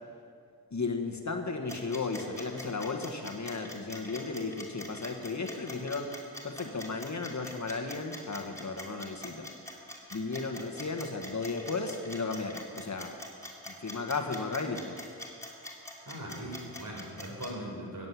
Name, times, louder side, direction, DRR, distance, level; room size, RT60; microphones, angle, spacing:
voice 1, 0.7-6.1 6.4-9.5 10.1-13.1 13.7-15.0, left 3 dB, 45° left, 4 dB, 1.4 m, -35 dB
Mechanical Clock Movement Ticking, 1.7-17.5, left 1 dB, 10° left, 3.1 m, -43 dB
voice 2, 16.0-18.1, equal, 55° right, -2 dB, 4.6 m, -40 dB
15.0 x 7.7 x 9.6 m, 2.2 s
wide cardioid pair, 80°, 38 cm